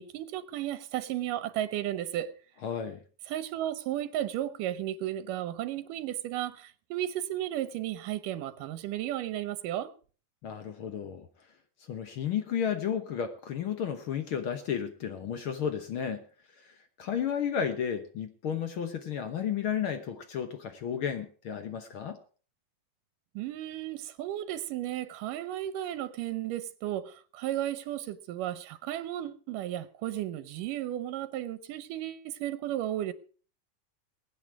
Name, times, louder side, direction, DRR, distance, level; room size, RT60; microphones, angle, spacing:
voice 1, 0.0-2.4 3.3-9.9 23.4-33.1, right 12 dB, 85° right, 2.5 m, -34 dB
voice 2, 2.6-3.0 10.4-11.3 11.8-16.2 16.6-22.2, left 8 dB, 70° left, 1.3 m, -33 dB
22.5 x 9.1 x 4.7 m
omnidirectional pair, 3.7 m